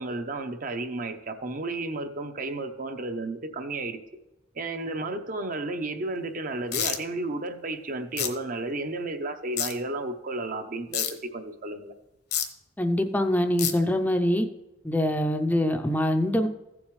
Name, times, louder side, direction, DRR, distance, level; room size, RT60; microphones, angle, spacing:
voice 1, 0.0-4.0 4.5-11.9, right 2 dB, 50° right, 7 dB, 0.8 m, -32 dB
sound 1, 6.7-7.0 8.2-8.3 9.6-9.7 10.9-11.1 12.3-12.4 13.6-13.7, left 10 dB, 60° left, 1.0 m, -26 dB
voice 2, 12.8-14.5 14.8-16.5, left 1 dB, 10° left, 6 dB, 0.5 m, -24 dB
15.5 x 7.2 x 3.2 m, 0.96 s
head